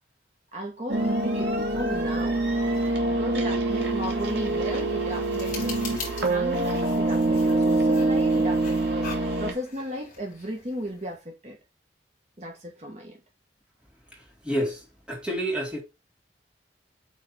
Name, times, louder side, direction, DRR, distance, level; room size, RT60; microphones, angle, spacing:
voice 1, 0.5-2.4 3.2-5.8 6.3-9.1 9.4-11.6 12.4-13.2, equal, 40° right, 1.4 m, -35 dB
sound 1, 0.9-9.5, right 2 dB, 70° right, 2.0 m, -25 dB
sound 2, 3.7-11.2, left 4 dB, 45° left, 3.9 m, -43 dB
voice 2, 14.4-14.8 15.1-15.8, equal, 5° right, 2.5 m, -28 dB
8.3 x 3.8 x 4.3 m
head